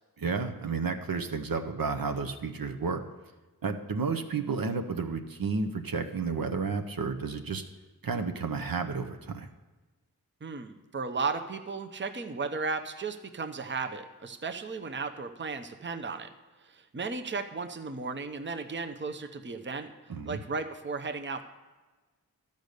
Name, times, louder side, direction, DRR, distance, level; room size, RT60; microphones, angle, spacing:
voice 1, 0.2-3.0 3.6-7.6 8.0-9.5 20.1-20.4, right 4 dB, 65° right, 6 dB, 0.8 m, -31 dB
voice 2, 10.4-16.3 16.7-19.9 20.2-21.4, right 4 dB, 30° right, 6 dB, 0.7 m, -35 dB
12.0 x 5.3 x 6.6 m, 1.3 s
cardioid pair, 50°, 37 cm